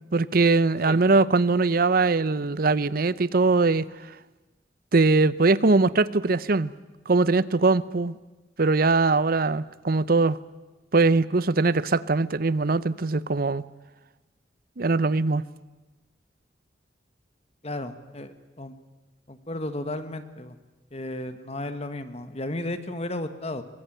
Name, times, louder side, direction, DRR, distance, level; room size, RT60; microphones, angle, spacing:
voice 1, 0.1-3.9 4.9-6.7 7.1-8.2 8.6-10.4 10.9-13.6 14.8-15.4, right 3 dB, 55° right, 18 dB, 0.7 m, -21 dB
voice 2, 17.6-18.8 19.3-20.6 20.9-23.6, left 1 dB, 35° left, 10 dB, 1.4 m, -34 dB
23.0 x 20.5 x 9.2 m, 1.2 s
head